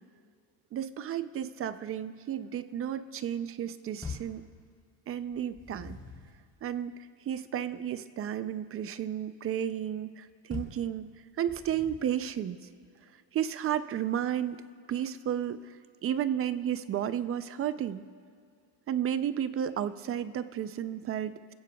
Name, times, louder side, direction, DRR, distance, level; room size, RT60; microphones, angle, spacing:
voice 1, 0.7-4.5 5.1-6.0 6.6-7.0 7.3-11.1 11.4-12.7 13.3-14.6 14.9-18.1 18.9-21.5, right 10 dB, 35° right, 13 dB, 0.4 m, -32 dB
sound 1, 4.0-4.4 5.3-6.4 10.5-10.9 11.5-12.2, left 4 dB, 10° left, 3.2 m, -42 dB
29.5 x 15.5 x 2.3 m, 2.3 s
cardioid pair, 145°, 42 cm